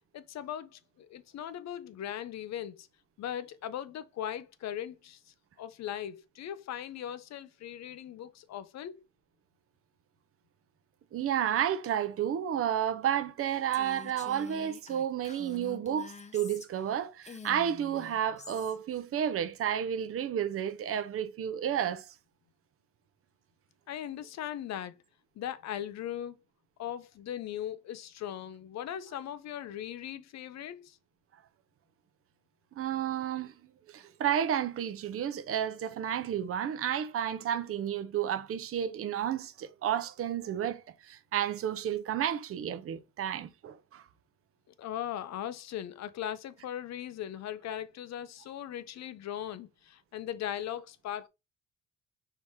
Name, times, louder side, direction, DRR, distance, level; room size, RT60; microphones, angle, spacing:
voice 1, 0.1-2.9 3.2-5.2 5.6-9.0 23.9-24.9 25.4-26.4 26.8-31.0 44.8-51.3, left 10 dB, 60° left, 0.6 m, -39 dB
voice 2, 11.1-22.1 32.8-33.5 33.9-44.0, right 9 dB, 50° right, 0.6 m, -31 dB
Female speech woman speaking, 13.7-16.9 17.2-18.8, left 5 dB, 25° left, 0.7 m, -47 dB
4.5 x 2.9 x 3.6 m
cardioid pair, 90°, 30 cm